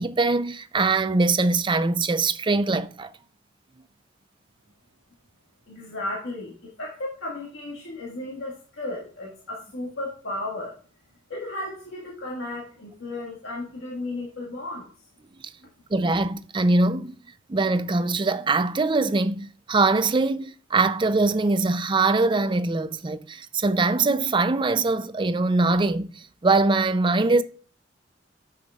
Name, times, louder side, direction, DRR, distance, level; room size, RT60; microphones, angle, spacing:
voice 1, 0.0-3.1 15.9-17.2 17.5-27.4, right 3 dB, 25° right, 0.5 m, -22 dB
voice 2, 5.7-10.7 11.3-14.9, left 2 dB, 85° left, 1.8 m, -34 dB
9.7 x 7.1 x 2.4 m
head